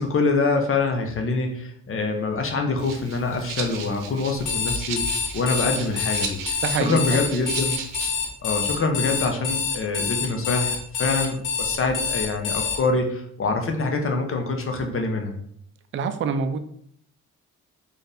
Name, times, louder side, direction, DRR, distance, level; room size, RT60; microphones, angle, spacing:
voice 1, 0.0-7.8 8.4-15.4, left 3 dB, 40° left, 3 dB, 0.8 m, -25 dB
Rattle (instrument), 2.8-8.3, right 6 dB, 90° right, 0.6 m, -36 dB
Alarm, 4.4-12.8, left 5 dB, 75° left, 0.8 m, -26 dB
voice 2, 6.6-7.0 15.9-16.6, right 5 dB, 40° right, 8 dB, 0.4 m, -25 dB
4.1 x 2.6 x 3.4 m, 0.66 s
cardioid pair, 110°, 32 cm